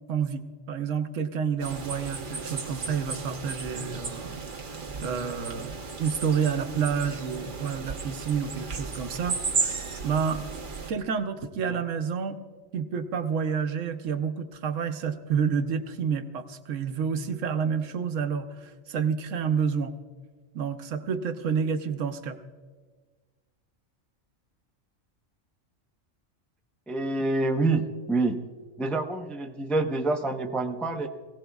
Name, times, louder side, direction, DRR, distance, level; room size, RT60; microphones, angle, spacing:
voice 1, 0.1-4.4 4.9-9.4 10.0-10.6 10.9-12.4 12.7-19.9 20.5-22.4, right 6 dB, 80° right, 8 dB, 1.1 m, -29 dB
sound 1, 1.6-10.9, right 4 dB, 45° right, 1.1 m, -34 dB
voice 2, 26.9-28.4 28.8-31.1, right 2 dB, ahead, 4 dB, 0.4 m, -27 dB
23.0 x 16.5 x 2.3 m, 1.5 s
omnidirectional pair, 1.3 m